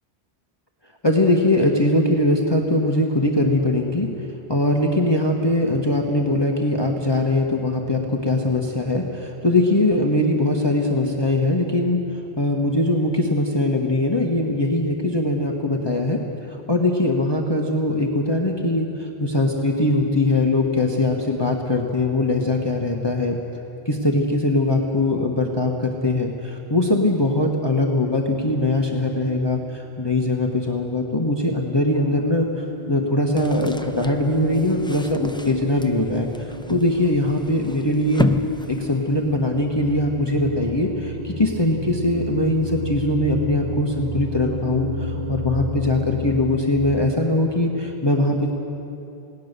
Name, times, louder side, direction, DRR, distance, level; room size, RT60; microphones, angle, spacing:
voice 1, 1.0-4.1 4.5-16.2 16.5-23.4 23.8-38.3 38.7-48.5, left 2 dB, 25° left, 0 dB, 1.4 m, -21 dB
sound 1, 31.9-46.6, equal, 40° right, 2.7 m, -33 dB
sound 2, 33.4-39.5, left 1 dB, 5° left, 0.5 m, -31 dB
28.5 x 18.5 x 6.8 m, 2.9 s
omnidirectional pair, 1.1 m